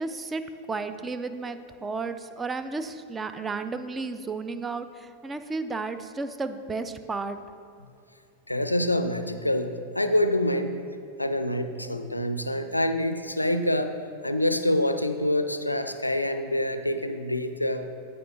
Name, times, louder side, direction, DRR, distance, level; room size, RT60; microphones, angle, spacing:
voice 1, 0.0-7.4, right 3 dB, 15° right, 10 dB, 0.4 m, -33 dB
voice 2, 8.5-10.7 11.2-13.9 14.2-17.8, left 1 dB, 85° left, 9 dB, 0.3 m, -26 dB
12.5 x 4.7 x 2.4 m, 2.5 s
figure-of-eight pair, 90°, 0 cm